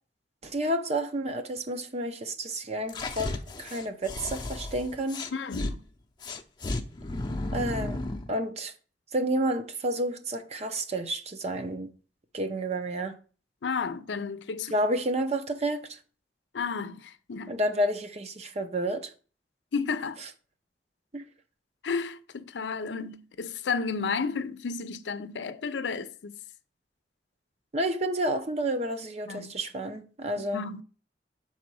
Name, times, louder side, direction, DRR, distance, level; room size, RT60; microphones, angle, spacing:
voice 1, 0.4-5.2 7.5-8.0 8.3-8.7 9.1-11.9 12.3-13.2 14.7-15.8 17.5-19.1 21.1-21.2 27.7-30.7, right 1 dB, 40° right, 0.7 m, -30 dB
sound 1, 2.9-5.7 6.2-8.3, left 2 dB, 25° left, 0.7 m, -34 dB
voice 2, 5.3-5.8 13.6-14.7 16.5-17.5 19.7-20.2 21.8-26.4 29.3-29.5 30.5-30.8, left 5 dB, 90° left, 0.5 m, -32 dB
6.0 x 4.3 x 6.1 m
head